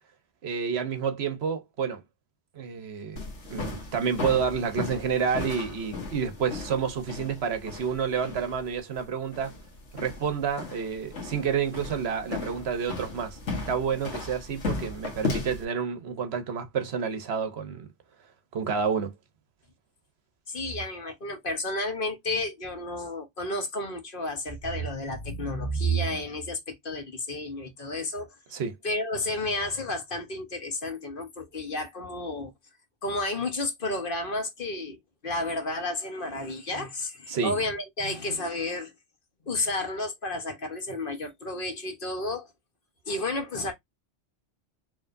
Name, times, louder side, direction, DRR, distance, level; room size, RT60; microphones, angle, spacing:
voice 1, 0.4-2.0 2.5-3.2 3.5-9.5 9.9-13.4 13.7-17.9 18.5-19.1 28.5-28.7 37.3-37.5, right 6 dB, 65° right, 1.0 m, -29 dB
sound 1, 3.2-15.6, left 3 dB, 80° left, 1.6 m, -36 dB
voice 2, 20.5-28.3 28.8-32.5 33.0-38.9 39.4-42.5 43.1-43.7, left 1 dB, 50° left, 1.3 m, -31 dB
4.8 x 3.0 x 2.5 m
omnidirectional pair, 1.2 m